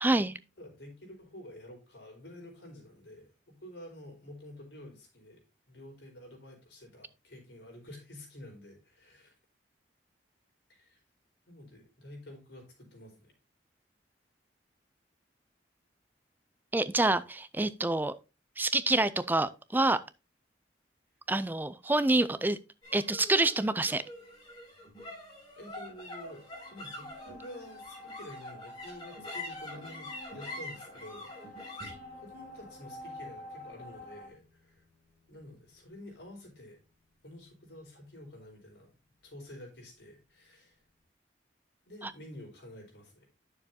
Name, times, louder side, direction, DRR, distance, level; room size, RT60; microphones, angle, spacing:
voice 1, 0.0-0.4 16.7-18.1 18.6-20.0 21.3-22.6 22.9-24.0 42.0-42.1, right 2 dB, 10° right, 0.3 m, -27 dB
voice 2, 0.6-5.4 5.7-9.3 10.7-11.0 11.5-13.3 22.3-22.4 25.6-31.6 32.1-34.8 35.3-36.8 37.2-38.9 39.2-40.8 41.8-43.3, left 1 dB, 80° left, 4.2 m, -49 dB
sound 1, 22.8-39.4, left 1 dB, 25° left, 5.5 m, -47 dB
sound 2, 26.2-34.3, left 1 dB, 45° left, 1.8 m, -49 dB
9.9 x 6.9 x 2.8 m
head